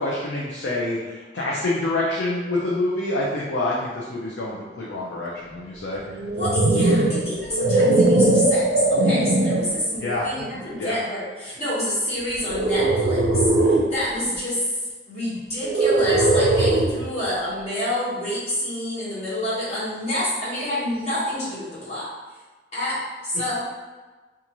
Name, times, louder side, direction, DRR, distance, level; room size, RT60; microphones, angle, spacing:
voice 1, 0.0-6.0 10.0-10.3 10.8-11.0, left 2 dB, 80° left, -4 dB, 0.5 m, -26 dB
voice 2, 6.1-8.7 9.0-14.6 15.1-22.1 22.7-23.9, left 1 dB, 35° left, -10 dB, 1.1 m, -28 dB
sound 1, 6.1-9.8 10.4-10.7 12.4-14.0 15.6-17.1, right 2 dB, 60° right, 0.3 m, -20 dB
2.6 x 2.4 x 2.9 m, 1.3 s
head